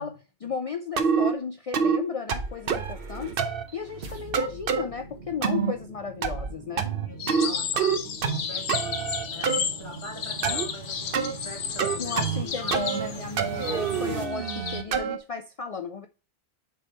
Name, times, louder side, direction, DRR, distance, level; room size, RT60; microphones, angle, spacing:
voice 1, 0.0-3.4 3.7-6.9 12.0-16.1, left 6 dB, 50° left, 6 dB, 0.4 m, -35 dB
sound 1, 1.0-1.3 1.7-2.0 2.3-2.9 3.4-3.6 4.3-4.8 5.4-5.7 6.2-6.5 6.8-7.5 7.8-8.4 8.7-9.6 10.4-10.7 11.1-11.3 11.8-12.4 12.7-13.1 13.4-15.2, right 6 dB, 65° right, 0.9 m, -26 dB
sound 2, 2.2-14.3, right 4 dB, 90° right, 1.4 m, -42 dB
voice 2, 7.0-12.8 13.1-13.9, left 1 dB, 30° left, 2 dB, 1.5 m, -43 dB
sound 3, 7.2-14.8, left 7 dB, 85° left, 1.1 m, -33 dB
6.7 x 3.5 x 4.2 m, 0.34 s
omnidirectional pair, 1.0 m